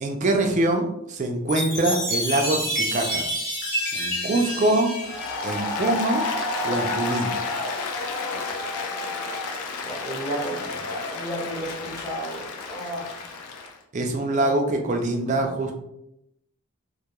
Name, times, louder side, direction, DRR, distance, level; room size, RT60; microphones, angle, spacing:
voice 1, 0.0-3.3 3.9-4.9 5.4-6.2 6.6-7.3 13.9-15.7, right 2 dB, 35° right, 3 dB, 0.3 m, -24 dB
Chime, 1.5-6.1, equal, 50° left, 0.9 m, -29 dB
Applause, 5.0-13.7, left 3 dB, 80° left, 0.4 m, -30 dB
voice 2, 6.9-7.3 8.3-8.6 9.8-13.2 14.3-15.0 15.3-15.6, right 1 dB, 15° left, -5 dB, 0.7 m, -34 dB
2.2 x 2.2 x 2.8 m, 0.81 s
head